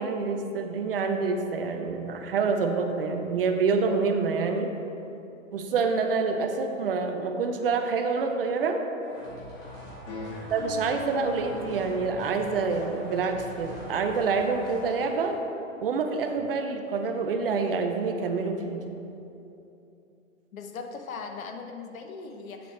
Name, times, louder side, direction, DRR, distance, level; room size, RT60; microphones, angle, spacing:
voice 1, 0.0-4.7 5.5-8.8 10.5-15.4 15.8-18.8, right 4 dB, 45° right, 5 dB, 0.6 m, -27 dB
sound 1, 9.0-15.5, equal, 10° left, 0.9 m, -44 dB
voice 2, 10.1-10.5 20.5-22.7, left 4 dB, 90° left, 5 dB, 0.9 m, -40 dB
sound 2, 10.1-15.1, left 1 dB, 45° left, 1.7 m, -42 dB
7.5 x 6.8 x 3.2 m, 2.8 s
hypercardioid pair, 165°, 40 cm